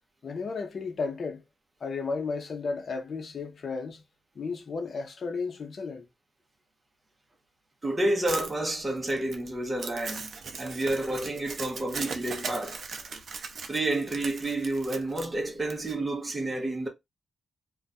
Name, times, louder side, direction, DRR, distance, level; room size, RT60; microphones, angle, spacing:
voice 1, 0.2-1.4 1.8-4.0 4.4-6.1, left 4 dB, 45° left, 0.8 m, -33 dB
voice 2, 7.8-10.3 10.6-12.8 13.7-16.9, right 1 dB, 15° right, 0.8 m, -30 dB
Crumpling crinkling, 8.3-15.9, right 4 dB, 55° right, 0.5 m, -39 dB
2.5 x 2.3 x 4.0 m
wide cardioid pair, 150°, 0 cm